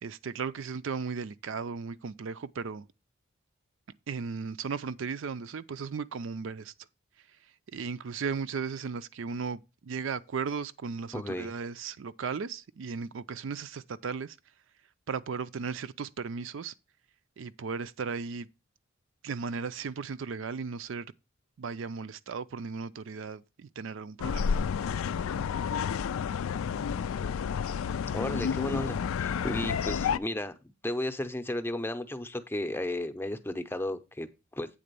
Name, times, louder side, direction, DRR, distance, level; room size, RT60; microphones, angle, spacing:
voice 1, 0.0-2.9 4.1-6.7 7.7-14.4 15.1-16.7 17.4-18.5 19.2-21.1 21.6-24.5, right 5 dB, 65° right, 0.4 m, -36 dB
voice 2, 11.1-11.5 28.1-30.5 30.8-34.7, left 1 dB, 10° left, 0.6 m, -34 dB
sound 1, 24.2-30.2, left 7 dB, 85° left, 0.4 m, -30 dB
8.6 x 3.8 x 6.7 m
head